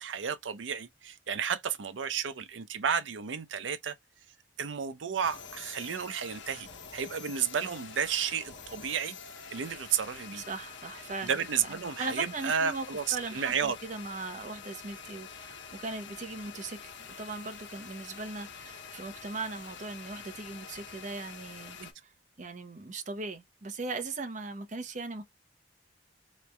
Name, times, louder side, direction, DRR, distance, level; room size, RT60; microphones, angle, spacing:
voice 1, 0.0-4.0 4.6-9.2 9.5-10.4 11.2-13.8 21.8-21.9, right 7 dB, 90° right, 0.6 m, -32 dB
sound 1, 5.2-21.9, left 6 dB, 85° left, 1.0 m, -47 dB
voice 2, 10.4-11.3 12.0-12.8 13.1-22.1 22.4-25.2, right 3 dB, 40° right, 0.7 m, -39 dB
4.0 x 3.2 x 2.2 m
head